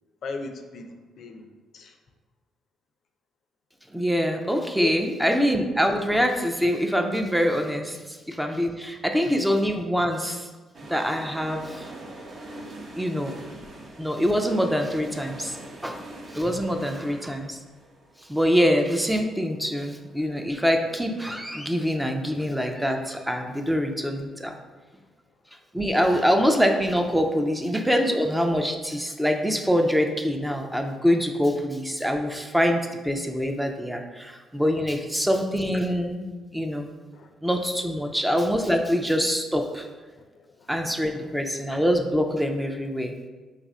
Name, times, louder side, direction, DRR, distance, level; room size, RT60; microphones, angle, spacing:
voice 1, 0.2-1.5 1.7-2.0 4.8-4.9 7.9-8.0 37.1-37.3 38.0-38.2 40.3-40.7 41.2-41.4, left 4 dB, 65° left, 6 dB, 0.4 m, -37 dB
voice 2, 3.9-10.5 10.9-11.9 13.0-13.3 14.0-15.6 15.8-16.0 16.3-17.6 18.3-24.5 25.7-36.9 37.4-39.9 40.7-43.1, equal, 5° right, 4 dB, 0.4 m, -24 dB
sound 1, 10.7-20.6 20.8-20.9, right 1 dB, 45° right, 0.6 m, -43 dB
3.3 x 2.4 x 4.1 m, 1.3 s
cardioid pair, 90°, 0 cm